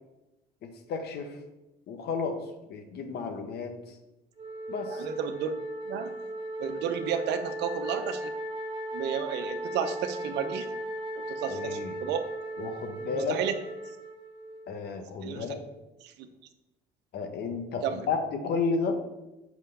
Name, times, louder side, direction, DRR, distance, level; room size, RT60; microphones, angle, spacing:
voice 1, 0.6-1.4 1.9-2.4 2.7-3.9 4.7-5.1 11.4-12.0 12.6-13.4 14.7-15.7 17.1-18.9, left 4 dB, 65° left, 6 dB, 1.4 m, -32 dB
Wind instrument woodwind instrument, 4.4-14.7, right 1 dB, 25° right, 1.5 m, -37 dB
voice 2, 4.9-5.5 5.8-6.1 6.6-8.3 8.9-10.7 11.1-12.2 13.1-13.5 15.2-15.5 16.0-16.3 17.8-18.1, right 7 dB, 75° right, 7 dB, 1.0 m, -32 dB
6.0 x 5.6 x 6.9 m, 0.98 s
supercardioid pair, 70°, 18 cm